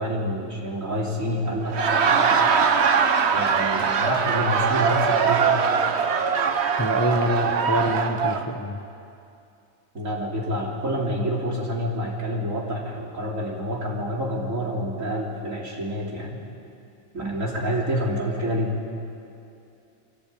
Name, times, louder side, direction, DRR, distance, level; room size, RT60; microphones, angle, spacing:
voice 1, 0.0-2.4 3.3-5.6 9.9-16.4 17.1-18.7, equal, 75° right, -2 dB, 3.6 m, -28 dB
Laughter, 1.6-8.5, right 6 dB, 55° right, 1.2 m, -22 dB
voice 2, 6.8-8.8, equal, 15° left, 4 dB, 0.9 m, -25 dB
24.0 x 16.0 x 8.6 m, 2.6 s
omnidirectional pair, 1.4 m